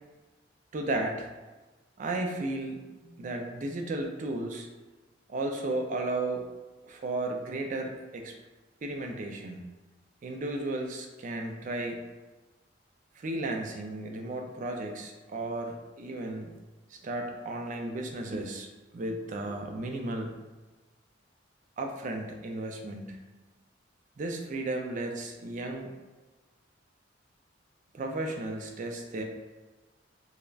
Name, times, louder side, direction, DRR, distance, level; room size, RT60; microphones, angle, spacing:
voice 1, 0.7-1.3 2.0-4.7 5.3-6.4 6.9-8.3 8.8-9.7 10.2-12.0 13.2-16.5 16.9-20.3 21.8-23.2 24.2-25.9 27.9-29.2, right 2 dB, 40° right, 3 dB, 0.3 m, -34 dB
2.3 x 2.0 x 3.3 m, 1.2 s
head